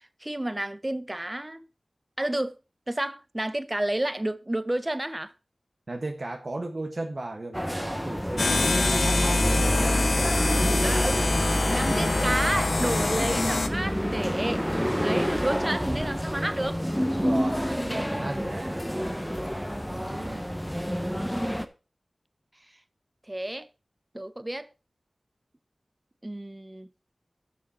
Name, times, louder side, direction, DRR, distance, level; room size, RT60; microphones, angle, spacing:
voice 1, 0.2-1.7 2.2-2.6 2.9-5.3 10.8-14.6 15.0-16.8 20.1-20.3 23.3-23.7 24.1-24.7 26.2-26.9, right 1 dB, 25° right, 1.0 m, -31 dB
voice 2, 5.9-10.4 17.1-18.8 19.9-20.4, right 2 dB, 60° right, 1.7 m, -36 dB
sound 1, 7.5-21.6, equal, ahead, 1.1 m, -27 dB
sound 2, 8.4-13.7, left 3 dB, 80° left, 0.7 m, -27 dB
12.0 x 6.4 x 4.3 m
cardioid pair, 40°, 0 cm